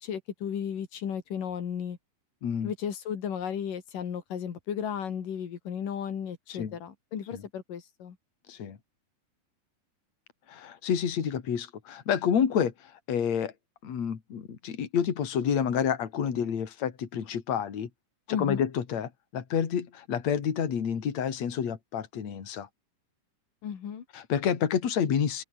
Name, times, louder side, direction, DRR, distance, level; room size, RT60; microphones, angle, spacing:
voice 1, 0.0-2.0 2.6-8.2 18.3-18.7 23.6-24.0, left 8 dB, 90° left, 4.3 m, -34 dB
voice 2, 10.5-12.7 13.1-13.5 13.8-17.9 18.4-22.7 24.1-25.4, left 8 dB, 60° left, 3.8 m, -29 dB
open air
omnidirectional pair, 3.7 m